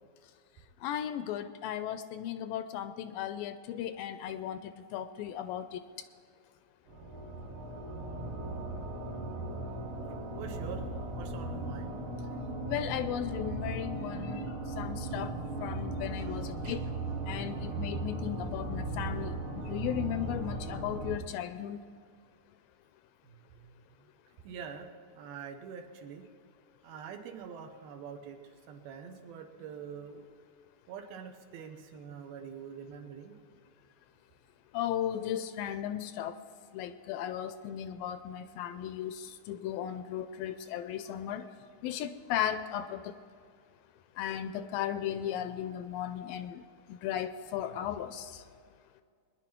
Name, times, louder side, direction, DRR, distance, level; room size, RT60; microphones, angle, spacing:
voice 1, 0.8-4.6 4.9-5.8 12.7-14.5 14.8-15.3 15.6-16.8 17.3-21.8 34.7-36.3 36.7-41.4 41.8-43.0 44.2-46.6 46.9-48.4, left 10 dB, 80° left, 10 dB, 2.2 m, -36 dB
sound 1, 6.9-21.2, right 2 dB, 50° right, 1.8 m, -37 dB
voice 2, 10.4-12.0 16.6-17.3 19.6-19.7 23.2-23.3 23.6-24.1 24.4-26.3 26.8-28.4 28.7-30.2 30.9-33.7, right 7 dB, 85° right, 6 dB, 2.9 m, -45 dB
22.0 x 10.5 x 4.4 m, 2.2 s
omnidirectional pair, 4.2 m